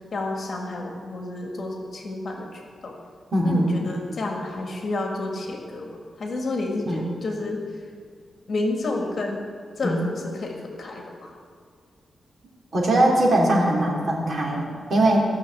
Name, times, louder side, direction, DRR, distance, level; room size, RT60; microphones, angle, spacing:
voice 1, 0.1-3.0 3.4-5.9 6.2-7.8 8.5-9.4 9.8-11.4, left 2 dB, 55° left, 1 dB, 1.7 m, -30 dB
voice 2, 3.3-3.7 6.9-7.0 9.8-10.0 12.7-15.2, right 1 dB, 50° right, -3 dB, 3.2 m, -21 dB
15.5 x 6.3 x 8.3 m, 2.1 s
wide cardioid pair, 125°, 0 cm